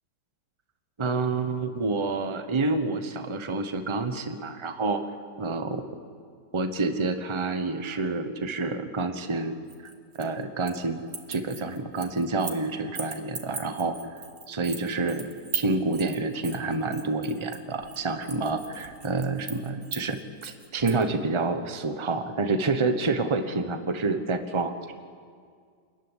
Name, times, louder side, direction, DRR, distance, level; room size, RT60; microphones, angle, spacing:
voice 1, 1.0-5.0 5.4-5.8 6.5-9.6 10.2-11.0 11.3-14.0 14.5-15.3 15.5-24.9, right 3 dB, 20° right, 8 dB, 1.0 m, -28 dB
sound 1, 9.7-10.8 11.1-12.6 13.0-21.0, right 5 dB, 40° right, 1.8 m, -39 dB
28.5 x 14.5 x 9.9 m, 2.1 s
omnidirectional pair, 1.8 m